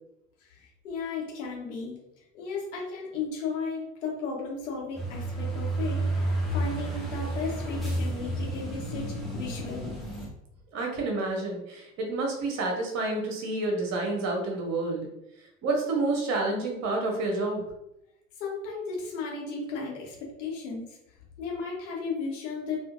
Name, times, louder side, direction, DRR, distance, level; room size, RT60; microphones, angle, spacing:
voice 1, 0.4-2.0 2.3-10.0 18.4-21.0 21.4-22.8, left 4 dB, 65° left, -2 dB, 1.2 m, -35 dB
sound 1, 5.0-10.3, right 1 dB, ahead, 1.0 m, -31 dB
voice 2, 10.7-15.1 15.4-17.6, right 2 dB, 40° right, 0 dB, 1.1 m, -29 dB
4.2 x 2.5 x 2.5 m, 0.85 s
figure-of-eight pair, 70°, 39 cm